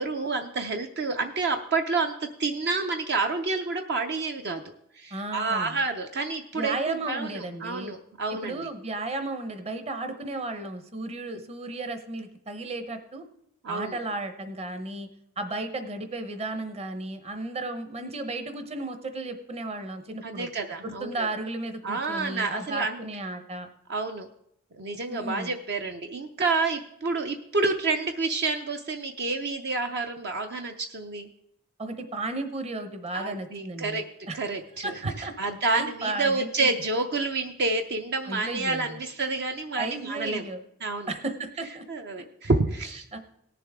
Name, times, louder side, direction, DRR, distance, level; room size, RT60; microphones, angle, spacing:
voice 1, 0.0-4.6 4.9-8.7 13.6-14.0 20.2-21.3 21.8-23.0 23.9-24.3 24.7-31.3 33.1-34.0 34.3-40.5 40.8-41.1 41.9-43.0, right 3 dB, 55° right, 5 dB, 0.6 m, -29 dB
voice 2, 5.1-5.7 6.5-7.9 8.3-13.2 13.7-15.1 15.4-20.5 20.8-23.7 25.1-25.5 31.8-34.0 34.3-34.4 34.8-35.3 35.7-36.7 38.2-39.0 39.8-40.6 41.1-41.8 43.1-43.2, right 2 dB, 30° right, 8 dB, 0.9 m, -34 dB
18.0 x 7.0 x 3.6 m, 0.75 s
head